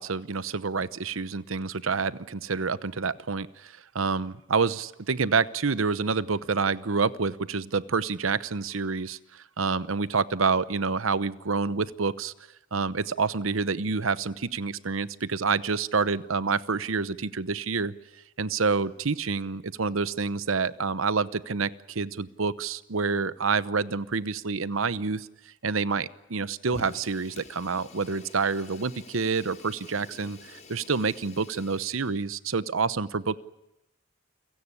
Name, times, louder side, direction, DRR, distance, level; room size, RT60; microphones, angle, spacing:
voice 1, 0.0-12.3 12.7-17.9 18.4-25.3 25.6-33.4, right 4 dB, 85° right, 17 dB, 0.9 m, -28 dB
Fire, 26.6-32.3, left 3 dB, 35° left, 3.2 m, -49 dB
29.5 x 17.0 x 9.8 m, 0.93 s
head